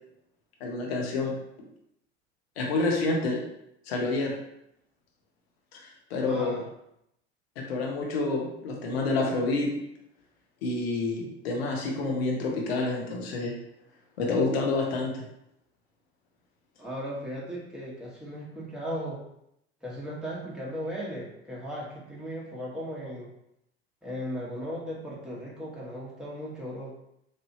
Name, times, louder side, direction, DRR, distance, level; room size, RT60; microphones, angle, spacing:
voice 1, 0.6-1.4 2.6-3.4 3.9-4.3 5.7-6.6 7.6-9.7 10.6-13.5 14.2-15.1, left 3 dB, 70° left, 0 dB, 1.0 m, -28 dB
voice 2, 6.3-6.7 16.8-19.2 19.8-23.3 24.0-26.9, equal, ahead, -5 dB, 1.2 m, -36 dB
3.3 x 2.6 x 2.7 m, 0.78 s
figure-of-eight pair, 70°, 32 cm